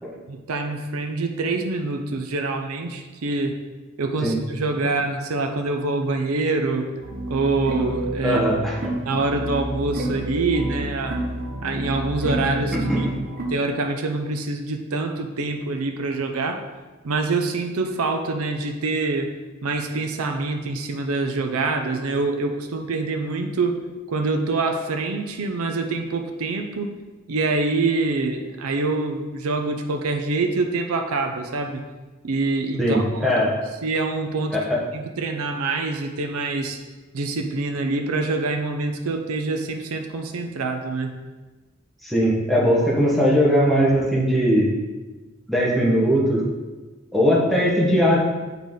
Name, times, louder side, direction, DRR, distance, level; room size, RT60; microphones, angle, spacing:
voice 1, 0.3-3.6 4.0-6.9 7.3-8.4 9.1-11.2 11.6-13.1 13.5-16.7 17.0-19.3 19.6-23.7 24.1-26.9 27.3-31.8 32.2-33.3 33.8-34.6 34.9-36.8 37.1-41.1, right 3 dB, 85° right, 5 dB, 0.5 m, -25 dB
sound 1, 7.0-13.5, right 1 dB, 40° right, 0.9 m, -29 dB
voice 2, 8.2-8.9 12.7-13.1 32.8-33.5 34.5-34.8 42.0-44.7 45.5-46.4 47.1-48.2, equal, ahead, -5 dB, 1.0 m, -20 dB
7.2 x 3.9 x 3.6 m, 1.2 s
head